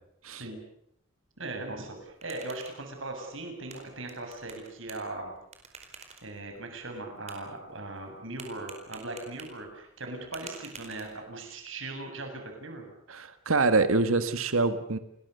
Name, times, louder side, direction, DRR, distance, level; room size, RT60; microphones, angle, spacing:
voice 1, 1.4-5.3 6.2-12.9, right 2 dB, 65° right, 4 dB, 7.7 m, -39 dB
sound 1, 1.9-11.5, right 5 dB, 30° right, 4.7 m, -51 dB
voice 2, 13.1-15.0, right 3 dB, 80° right, 10 dB, 1.7 m, -25 dB
29.5 x 22.0 x 6.9 m, 0.75 s
head